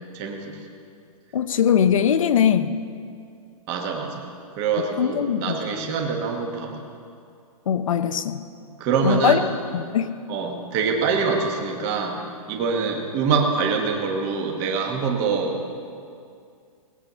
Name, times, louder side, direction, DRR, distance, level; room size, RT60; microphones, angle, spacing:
voice 1, 0.1-0.6 3.7-4.2 4.6-6.8 8.8-9.4 10.3-12.2 12.5-15.6, right 5 dB, 20° right, 1 dB, 1.4 m, -24 dB
voice 2, 1.3-2.8 5.0-5.6 7.7-8.4 9.0-9.4 9.7-10.1, left 8 dB, 60° left, 11 dB, 0.8 m, -21 dB
19.0 x 7.8 x 6.9 m, 2.4 s
hypercardioid pair, 170°, 19 cm